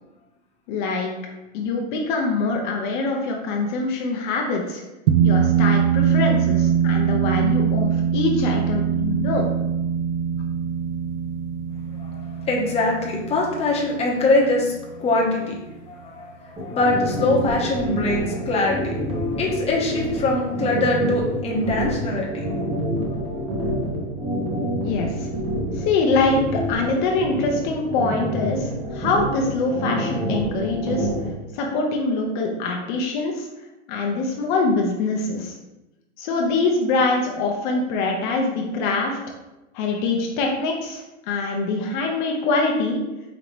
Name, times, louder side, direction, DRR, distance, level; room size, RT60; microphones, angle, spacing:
voice 1, 0.7-1.1 1.5-4.8 5.2-9.5 24.8-25.3 25.8-31.1 31.5-33.5 33.9-35.5 36.2-39.2 39.7-43.0, left 3 dB, 45° left, 1 dB, 0.7 m, -24 dB
sound 1, 5.1-15.8, right 8 dB, 70° right, 0.5 m, -23 dB
voice 2, 12.0-14.7 15.0-15.6 15.9-22.5 23.1-23.4, left 2 dB, 15° left, -3 dB, 0.9 m, -23 dB
sound 2, 16.6-31.3, right 1 dB, 15° right, 0.8 m, -27 dB
5.1 x 2.8 x 3.0 m, 0.98 s
hypercardioid pair, 140°, 36 cm